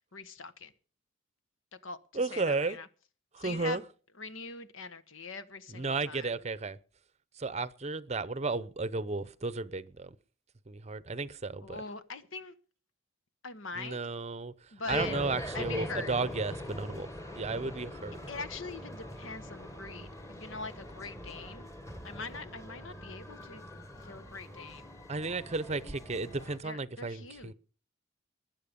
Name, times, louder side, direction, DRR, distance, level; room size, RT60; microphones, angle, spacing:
voice 1, 0.1-0.7 1.8-2.9 3.4-3.8 4.2-6.3 11.6-12.5 13.4-14.0 14.7-15.1 15.5-16.1 18.3-21.7 22.0-23.7 24.0-24.8 26.6-27.5, left 4 dB, 75° left, 1.3 m, -42 dB
voice 2, 2.1-2.8 3.3-3.8 5.7-6.8 7.4-10.1 10.7-11.8 13.8-14.5 14.9-17.1 17.4-18.2 25.1-27.5, right 3 dB, 30° right, 0.7 m, -33 dB
sound 1, 14.9-26.6, equal, 15° left, 1.5 m, -42 dB
20.5 x 7.6 x 5.3 m
head